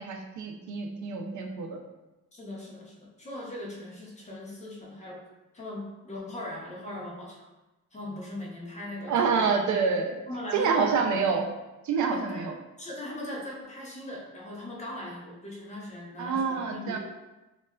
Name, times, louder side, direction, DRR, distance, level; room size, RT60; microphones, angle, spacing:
voice 1, 0.0-1.8 9.1-10.2 10.5-11.4 11.8-12.5 16.2-17.0, right 5 dB, 75° right, 3 dB, 0.4 m, -27 dB
voice 2, 2.3-5.2 5.5-7.5 7.9-9.5 10.3-11.0 12.1-12.5 12.8-17.0, left 1 dB, 25° left, -4 dB, 0.5 m, -39 dB
3.2 x 2.3 x 2.2 m, 1.0 s
wide cardioid pair, 160°, 30 cm